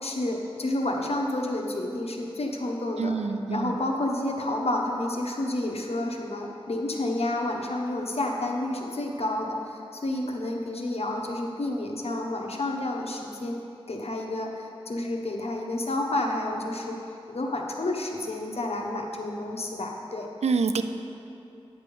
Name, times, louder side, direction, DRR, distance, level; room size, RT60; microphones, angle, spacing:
voice 1, 0.0-3.1 3.5-13.6 13.9-17.0 17.3-20.3, left 1 dB, 70° left, 1 dB, 0.9 m, -30 dB
voice 2, 3.0-3.7 20.4-20.8, right 5 dB, 85° right, 9 dB, 0.4 m, -26 dB
9.3 x 3.4 x 6.8 m, 2.8 s
wide cardioid pair, 55°, 11 cm